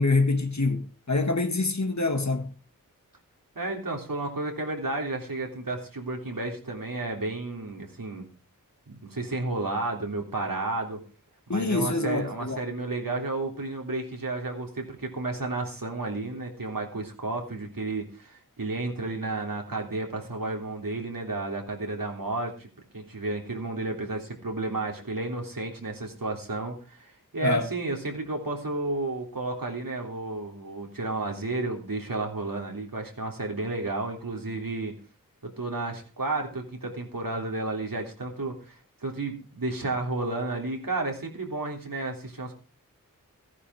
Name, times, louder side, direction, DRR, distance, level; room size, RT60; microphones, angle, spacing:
voice 1, 0.0-2.5 11.5-12.6 27.4-27.7, left 3 dB, 55° left, 1.9 m, -25 dB
voice 2, 3.5-8.2 8.9-11.0 11.5-22.7 22.9-34.9 35.4-42.5, right 2 dB, 75° right, 3.5 m, -32 dB
15.5 x 9.9 x 4.8 m
wide cardioid pair, 55°, 34 cm